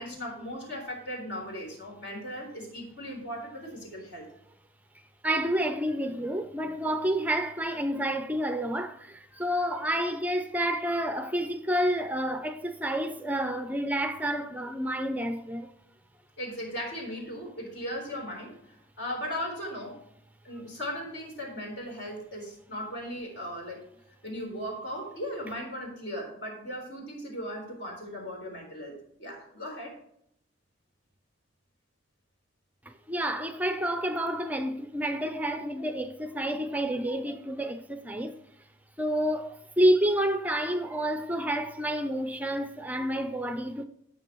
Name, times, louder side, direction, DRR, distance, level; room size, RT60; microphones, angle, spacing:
voice 1, 0.0-4.3 16.4-20.0 20.4-23.9 24.2-30.0, equal, 65° left, 3.9 m, -37 dB
voice 2, 5.2-15.7 33.1-38.4 39.0-43.8, right 1 dB, 10° right, 0.5 m, -29 dB
16.0 x 6.0 x 3.0 m
head